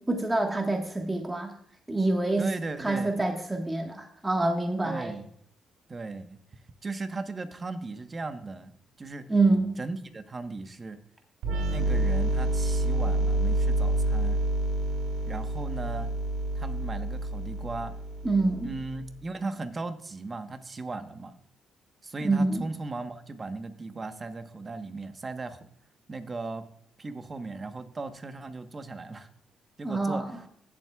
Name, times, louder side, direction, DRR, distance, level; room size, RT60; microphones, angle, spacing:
voice 1, 0.0-1.5 1.9-2.5 2.8-5.1 9.3-9.8 18.2-18.7 22.2-22.6 29.8-30.3, right 2 dB, 15° right, 2 dB, 1.4 m, -26 dB
voice 2, 2.4-3.2 4.8-5.3 5.9-6.4 6.8-8.7 9.0-9.2 9.8-11.0 11.7-14.4 15.2-16.1 16.5-17.9 18.6-21.4 22.0-25.7 26.1-26.6 27.0-29.3 29.8-30.2, right 3 dB, 30° right, 8 dB, 1.1 m, -37 dB
sound 1, 11.4-19.0, right 1 dB, 85° right, 3.1 m, -28 dB
16.5 x 7.5 x 2.3 m, 0.68 s
cardioid pair, 90°, 0 cm